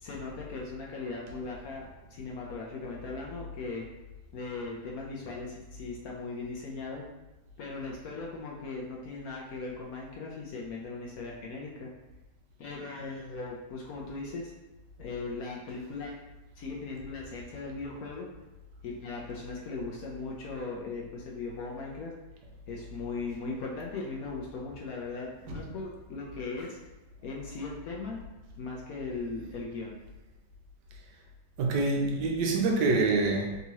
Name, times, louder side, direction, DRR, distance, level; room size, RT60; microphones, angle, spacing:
voice 1, 0.0-1.8 2.1-3.8 4.3-7.0 7.6-11.9 12.6-14.5 15.0-16.1 16.6-18.3 18.8-22.1 22.7-26.8 27.2-28.2 28.6-30.0, left 3 dB, 70° left, -2 dB, 0.9 m, -38 dB
voice 2, 31.6-33.6, right 3 dB, 80° right, 0 dB, 1.2 m, -26 dB
3.6 x 2.9 x 2.8 m, 1.0 s
omnidirectional pair, 1.9 m